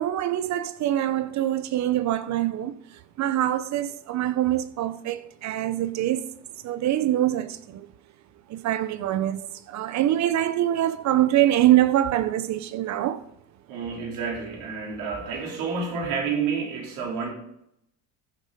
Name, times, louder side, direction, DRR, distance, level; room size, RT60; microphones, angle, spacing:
voice 1, 0.0-2.7 3.2-6.3 6.6-7.9 8.5-13.2, right 13 dB, 55° right, 0.8 m, -24 dB
voice 2, 13.7-17.3, right 5 dB, 70° right, 3.9 m, -29 dB
14.5 x 6.5 x 5.1 m
supercardioid pair, 85°, 34 cm